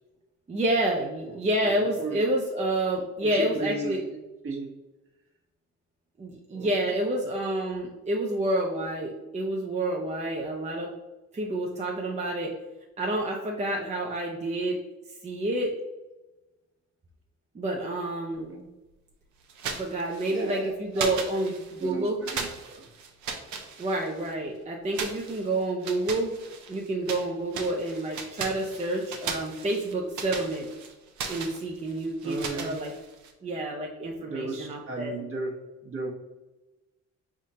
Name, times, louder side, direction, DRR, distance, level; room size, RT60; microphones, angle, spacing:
voice 1, 0.5-4.0 6.2-10.9 11.3-12.5 13.0-14.8 15.2-15.7 17.5-18.5 19.8-21.5 21.8-22.2 23.8-26.3 26.7-30.7 31.3-32.9 33.4-35.1, right 1 dB, 25° right, -1 dB, 0.6 m, -29 dB
voice 2, 1.6-2.2 3.2-4.2 4.4-4.7 6.5-7.0 18.3-18.6 20.3-22.8 32.2-32.8 34.3-35.5 35.8-36.1, right 3 dB, 45° right, 0 dB, 1.2 m, -35 dB
sound 1, 19.5-20.6 20.9-21.9 22.3-24.3 24.9-27.3 27.5-33.3, right 5 dB, 70° right, 0.7 m, -37 dB
5.1 x 3.6 x 2.8 m, 1.1 s
cardioid pair, 90°, 30 cm